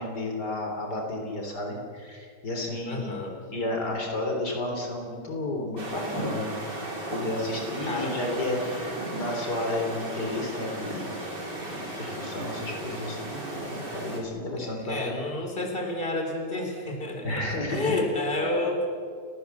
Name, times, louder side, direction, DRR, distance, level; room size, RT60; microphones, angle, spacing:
voice 1, 0.0-3.3 3.5-6.5 7.1-11.1 11.6-15.0 17.2-18.0, left 1 dB, 70° left, 1 dB, 4.2 m, -32 dB
voice 2, 2.9-3.3 7.9-8.5 14.6-18.9, left 2 dB, 30° left, 2 dB, 4.0 m, -30 dB
sound 1, 5.8-14.2, right 1 dB, 80° right, 4.3 m, -35 dB
30.0 x 18.0 x 7.2 m, 2.4 s
omnidirectional pair, 1.8 m